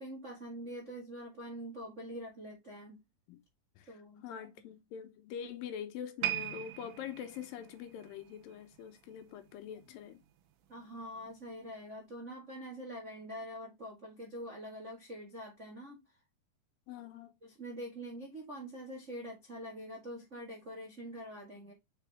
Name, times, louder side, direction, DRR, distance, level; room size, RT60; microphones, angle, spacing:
voice 1, 0.0-3.0 3.9-4.4 10.7-16.0 17.4-21.7, equal, 40° right, 1.0 m, -45 dB
voice 2, 4.2-10.2 16.9-17.3, left 9 dB, 75° left, 2.5 m, -44 dB
sound 1, 6.2-9.5 9.8-10.1 10.8-10.9, right 12 dB, 80° right, 2.4 m, -40 dB
5.8 x 4.7 x 3.4 m
omnidirectional pair, 4.3 m